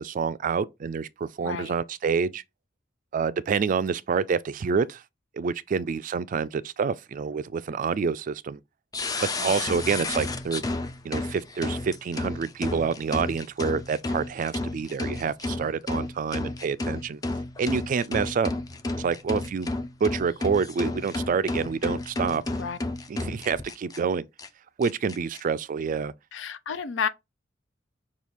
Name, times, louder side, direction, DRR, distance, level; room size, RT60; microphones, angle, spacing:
voice 1, 0.0-2.4 3.1-5.0 5.3-8.6 9.2-10.6 11.0-17.2 17.6-18.5 19.0-19.7 20.0-22.4 23.1-24.2 24.8-26.1, right 5 dB, 45° right, 0.3 m, -27 dB
voice 2, 1.4-1.8 9.4-9.7 22.5-22.8 26.3-27.1, left 6 dB, 80° left, 0.5 m, -32 dB
sound 1, 8.9-24.0 24.4-24.5 24.8-25.4, left 2 dB, 20° left, 0.5 m, -32 dB
6.1 x 2.4 x 3.5 m
head